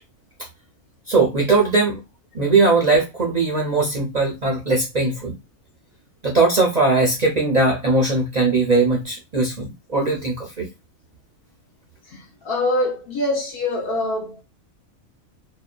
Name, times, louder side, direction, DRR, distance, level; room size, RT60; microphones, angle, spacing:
voice 1, 1.1-2.0 2.3-5.4 6.2-10.7, right 3 dB, 55° right, 0.4 m, -19 dB
voice 2, 12.1-14.4, left 1 dB, 55° left, 0.7 m, -24 dB
2.7 x 2.3 x 2.2 m
omnidirectional pair, 1.5 m